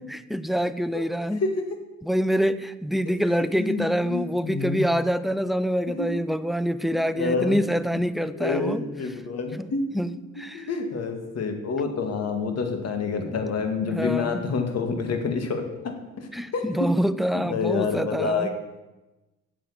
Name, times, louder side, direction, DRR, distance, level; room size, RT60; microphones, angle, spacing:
voice 1, 0.1-1.5 2.0-9.2 9.6-10.7 13.3-13.4 13.9-14.5 16.3-18.5, equal, ahead, 13 dB, 0.5 m, -26 dB
voice 2, 3.6-4.8 6.0-6.1 6.8-7.6 8.3-9.9 10.5-15.9 16.5-16.6 17.3-18.5, left 4 dB, 55° left, 6 dB, 2.1 m, -28 dB
8.4 x 7.6 x 8.6 m, 1.1 s
cardioid pair, 90°, 30 cm